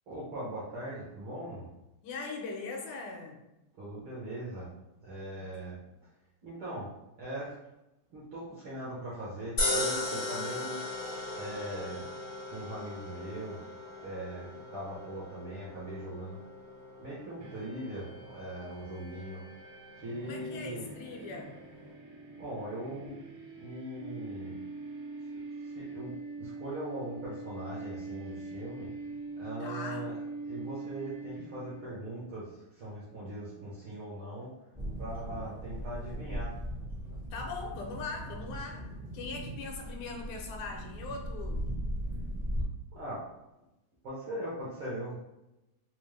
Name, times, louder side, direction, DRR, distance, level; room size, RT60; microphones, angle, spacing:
voice 1, 0.1-1.7 3.8-4.7 5.0-5.8 6.4-6.9 7.2-7.6 8.1-10.8 11.4-12.0 12.5-13.7 14.0-16.4 17.0-19.4 20.0-20.9 22.4-23.1 23.5-24.5 25.3-28.9 29.4-30.2 30.4-34.5 35.0-36.5 42.9-43.2 44.0-45.2, right 1 dB, 70° right, -8 dB, 1.2 m, -40 dB
voice 2, 2.0-3.4 5.4-5.5 20.2-21.6 29.6-30.1 37.3-38.9 39.1-41.6, left 4 dB, 85° left, 1 dB, 2.0 m, -40 dB
sound 1, 9.6-21.9, left 2 dB, 60° left, 0.9 m, -38 dB
sound 2, 17.4-31.9, right 3 dB, 90° right, 1.3 m, -43 dB
sound 3, 34.7-42.6, equal, 45° right, 0.5 m, -38 dB
5.0 x 2.0 x 3.2 m, 0.92 s
omnidirectional pair, 3.4 m